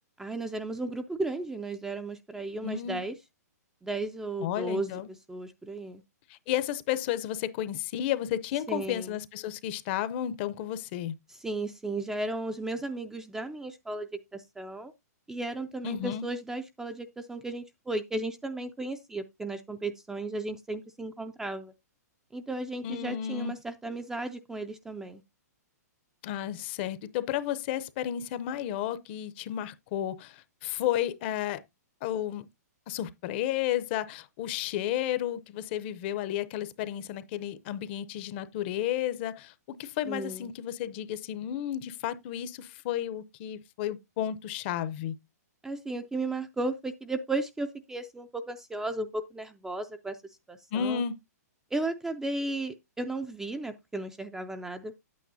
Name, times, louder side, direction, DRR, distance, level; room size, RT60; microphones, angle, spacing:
voice 1, 0.2-3.2 3.8-4.9 5.3-6.0 8.7-9.2 11.4-14.9 15.3-21.7 22.3-25.2 40.1-40.5 45.6-50.2 50.5-51.0 51.7-54.9, right 2 dB, 5° right, 0.4 m, -35 dB
voice 2, 2.6-3.0 4.4-5.1 6.3-11.1 15.8-16.2 22.8-23.5 26.2-31.6 32.0-32.5 32.9-45.1 50.7-51.1, left 11 dB, 40° left, 0.6 m, -32 dB
8.9 x 8.5 x 2.6 m
hypercardioid pair, 145°, 9 cm